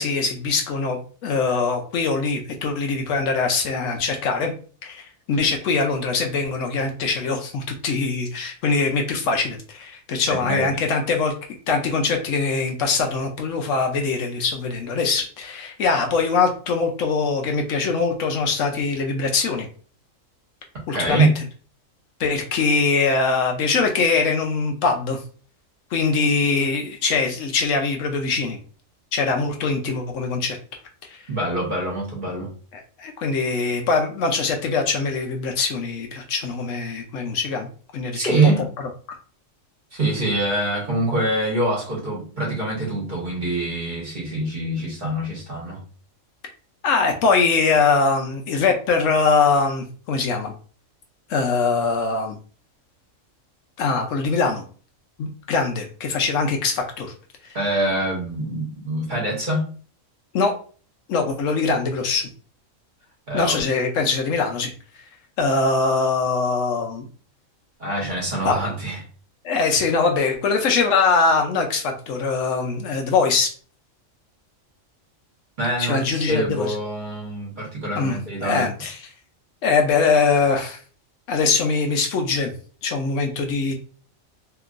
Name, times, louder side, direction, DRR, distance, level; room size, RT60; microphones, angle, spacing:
voice 1, 0.0-4.5 4.8-11.3 11.7-19.7 20.9-21.3 22.2-25.2 25.9-28.6 29.1-30.6 31.1-31.2 32.7-37.7 37.9-38.4 46.8-50.5 51.3-52.4 53.8-54.6 55.2-57.1 57.4-57.6 60.3-60.5 61.1-62.3 63.3-64.7 65.4-67.1 68.4-68.6 69.4-73.5 75.8-76.7 78.0-79.0 79.6-80.8 81.3-82.5 82.8-83.7, left 4 dB, 75° left, 3 dB, 0.9 m, -22 dB
voice 2, 10.3-10.7 20.9-21.3 31.3-32.5 38.1-38.6 39.9-45.8 57.5-59.6 63.3-63.6 67.8-69.0 75.6-78.6, right 2 dB, 40° right, -3 dB, 1.1 m, -24 dB
2.9 x 2.6 x 2.4 m, 0.40 s
omnidirectional pair, 1.4 m